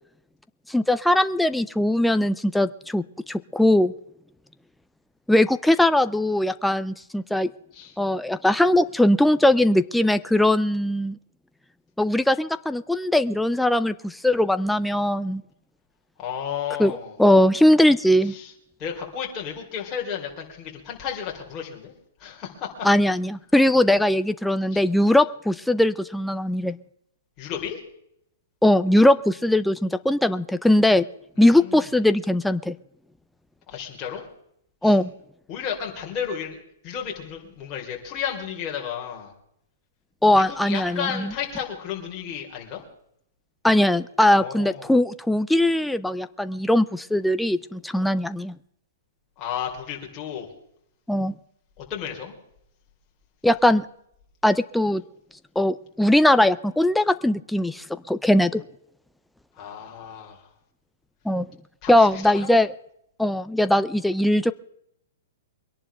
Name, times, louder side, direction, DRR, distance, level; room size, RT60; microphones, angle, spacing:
voice 1, 0.7-3.9 5.3-7.5 8.0-11.2 12.0-15.4 16.8-18.3 22.8-26.8 28.6-31.0 31.4-32.7 34.8-35.1 40.2-41.3 43.6-48.5 51.1-51.3 53.4-53.8 54.4-55.0 55.6-58.6 61.3-61.5 61.9-62.7 63.2-64.5, left 1 dB, ahead, 11 dB, 0.4 m, -20 dB
voice 2, 16.2-17.2 18.3-18.5 18.8-21.9 22.2-22.9 24.7-24.8 27.4-27.8 31.5-31.8 33.7-34.3 34.8-35.0 35.5-36.6 36.8-39.3 40.4-42.8 44.2-45.0 49.4-50.5 51.8-52.3 59.6-60.5 61.8-62.6, left 8 dB, 25° left, -1 dB, 3.7 m, -33 dB
24.0 x 11.0 x 3.4 m, 0.74 s
hypercardioid pair, 155°, 0 cm